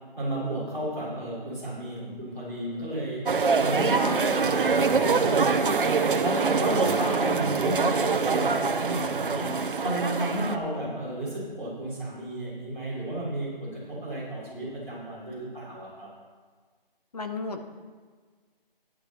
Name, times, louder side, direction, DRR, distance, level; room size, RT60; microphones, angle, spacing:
voice 1, 0.2-3.2 3.6-9.5 9.8-16.1, right 1 dB, 5° left, -13 dB, 3.9 m, -33 dB
sound 1, 3.3-10.6, right 4 dB, 65° right, 0.8 m, -24 dB
voice 2, 3.9-4.6 7.0-7.3 17.1-17.6, left 3 dB, 45° left, 6 dB, 0.9 m, -35 dB
14.0 x 10.5 x 3.0 m, 1.5 s
hypercardioid pair, 175°, 29 cm